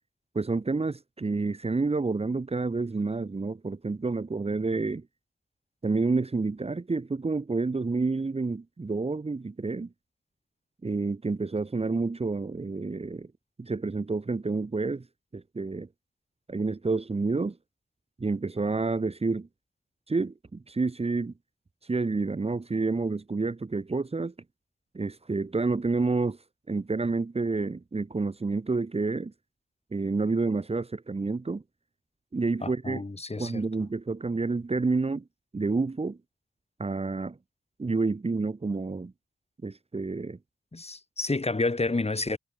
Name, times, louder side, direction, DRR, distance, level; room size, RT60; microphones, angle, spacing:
voice 1, 0.3-5.0 5.8-9.9 10.8-13.3 13.6-15.1 15.3-15.9 16.5-17.6 18.2-19.5 20.1-21.3 21.9-24.3 24.9-26.4 26.7-29.3 29.9-31.6 32.3-33.0 33.4-35.2 35.5-36.2 36.8-37.4 37.8-39.1 39.6-40.4, right 3 dB, 35° right, 1.3 m, -29 dB
voice 2, 32.6-33.6 40.7-42.4, left 3 dB, 35° left, 5.7 m, -30 dB
cardioid pair, 45°, 18 cm